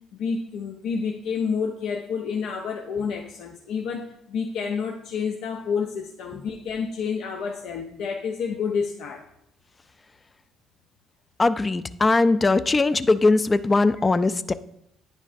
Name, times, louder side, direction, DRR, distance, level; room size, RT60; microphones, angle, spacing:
voice 1, 0.1-9.3, left 6 dB, 75° left, 3 dB, 0.6 m, -29 dB
voice 2, 11.4-14.5, left 3 dB, 25° left, 13 dB, 0.3 m, -20 dB
10.0 x 5.2 x 2.6 m, 0.76 s
supercardioid pair, 65°, 0 cm